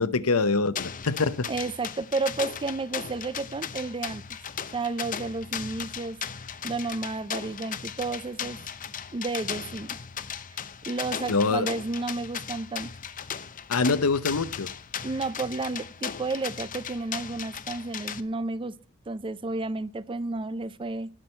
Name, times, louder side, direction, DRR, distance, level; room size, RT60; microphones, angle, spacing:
voice 1, 0.0-1.5 11.3-11.7 13.7-14.7, left 4 dB, 80° left, 0.8 m, -24 dB
sound 1, 0.8-18.2, left 8 dB, 40° left, 0.7 m, -37 dB
voice 2, 1.5-4.2 4.7-6.2 6.6-8.6 9.1-10.0 10.9-12.9 15.0-18.7 19.1-21.1, right 3 dB, 25° right, 0.4 m, -31 dB
18.0 x 6.2 x 4.4 m
head